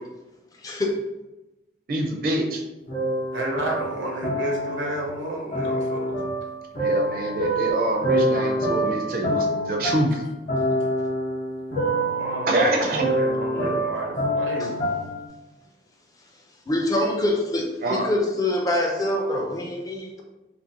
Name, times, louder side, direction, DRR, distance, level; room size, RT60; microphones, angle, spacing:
voice 1, 0.6-0.9 16.7-20.2, left 1 dB, 20° left, 0 dB, 0.4 m, -25 dB
voice 2, 1.9-2.6 6.8-10.2 12.5-13.1 17.8-18.1, right 1 dB, 50° right, 2 dB, 0.5 m, -25 dB
sound 1, 2.9-5.1 5.5-15.2, right 1 dB, 45° left, 0.8 m, -26 dB
voice 3, 3.3-6.2 10.5-10.8 11.9-14.8, right 1 dB, 80° right, -1 dB, 0.7 m, -31 dB
2.8 x 2.5 x 2.8 m, 1.0 s
head